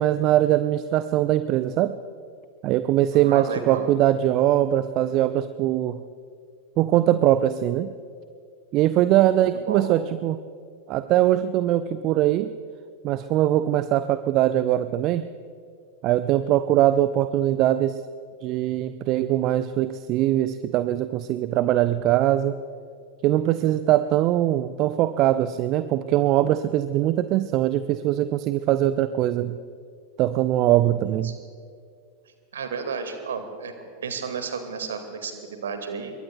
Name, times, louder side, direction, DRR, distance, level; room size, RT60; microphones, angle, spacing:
voice 1, 0.0-2.0 2.6-6.0 6.8-7.9 8.7-10.4 10.9-12.5 13.0-15.3 16.0-18.0 18.4-22.6 23.2-29.6 30.2-31.4, right 13 dB, 40° right, 14 dB, 0.4 m, -22 dB
voice 2, 3.1-3.9 9.3-9.8 31.2-31.3 32.5-36.1, right 6 dB, 65° right, 7 dB, 1.9 m, -33 dB
27.0 x 22.5 x 2.3 m, 2.2 s
figure-of-eight pair, 90°, 0 cm